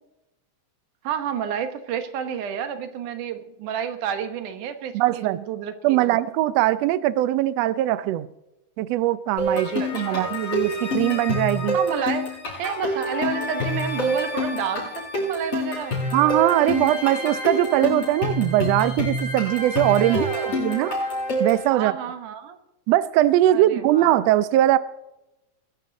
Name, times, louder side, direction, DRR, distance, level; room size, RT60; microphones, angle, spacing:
voice 1, 1.0-5.7 6.0-6.2 9.5-10.3 11.7-12.3 12.6-16.0 19.9-20.6 21.7-22.6 23.5-24.1, right 8 dB, 75° right, 8 dB, 2.7 m, -30 dB
voice 2, 4.9-5.4 5.8-8.3 8.8-11.8 16.1-20.9 21.4-21.9 22.9-24.8, right 14 dB, 90° right, 15 dB, 1.4 m, -21 dB
sound 1, 9.4-21.7, left 1 dB, 45° left, 6.9 m, -27 dB
21.5 x 11.5 x 3.9 m, 0.93 s
omnidirectional pair, 3.8 m